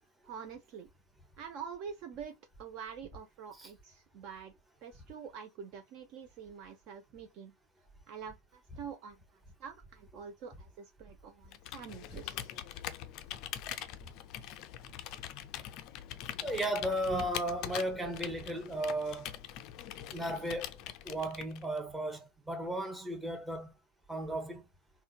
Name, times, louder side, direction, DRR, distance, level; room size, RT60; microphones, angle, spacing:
voice 1, 0.2-0.9 1.4-4.5 4.8-7.5 8.1-9.2 9.6-12.5, right 7 dB, 40° right, 0.4 m, -46 dB
Computer keyboard, 11.5-21.8, left 11 dB, 40° left, 0.3 m, -43 dB
voice 2, 16.4-19.3 20.1-20.8 21.0-23.7 24.1-24.6, right 1 dB, 10° right, 0.8 m, -35 dB
3.7 x 2.1 x 2.3 m
figure-of-eight pair, 90°, 0 cm